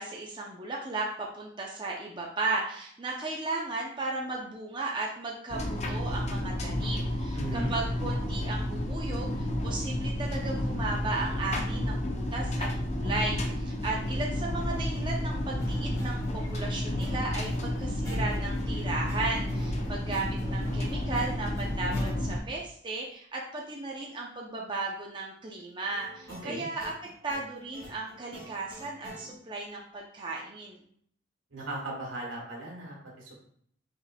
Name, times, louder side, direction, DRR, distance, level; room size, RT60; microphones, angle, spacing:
voice 1, 0.0-26.9 27.2-30.8, right 3 dB, 25° right, -2 dB, 0.5 m, -35 dB
sound 1, 5.5-22.4, left 1 dB, 35° left, 0.6 m, -31 dB
voice 2, 7.3-7.7 26.3-26.6 31.5-33.3, right 1 dB, 85° right, -2 dB, 1.6 m, -37 dB
sound 2, 15.6-22.2 25.9-29.3, equal, 15° left, 1.9 m, -46 dB
5.3 x 4.0 x 2.2 m, 0.64 s
head